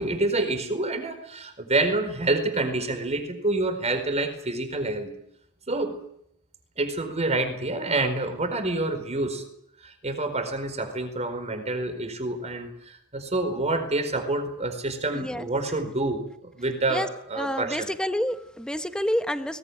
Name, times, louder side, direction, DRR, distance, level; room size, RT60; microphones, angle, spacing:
voice 1, 0.0-5.1 5.7-6.0 6.8-9.4 9.8-17.9, right 2 dB, 30° right, 7 dB, 4.5 m, -27 dB
voice 2, 15.1-15.5 16.9-17.1 17.3-19.6, equal, 5° left, 8 dB, 1.3 m, -28 dB
22.0 x 19.5 x 10.0 m, 0.73 s
head